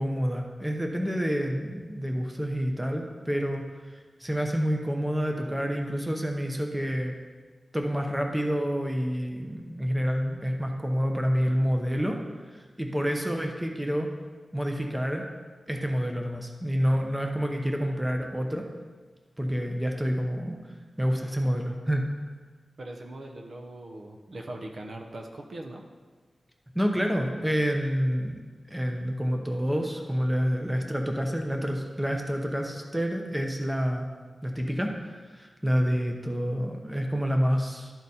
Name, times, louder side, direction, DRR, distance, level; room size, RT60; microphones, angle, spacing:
voice 1, 0.0-7.2 7.7-12.2 12.5-14.1 14.5-15.3 15.7-18.7 19.4-20.6 21.0-22.1 26.7-28.4 28.7-34.1 34.4-37.9, equal, 10° right, 2 dB, 0.8 m, -28 dB
voice 2, 22.8-25.8, right 1 dB, 55° right, 2 dB, 0.8 m, -40 dB
12.0 x 4.0 x 4.1 m, 1.4 s
wide cardioid pair, 105°, 0 cm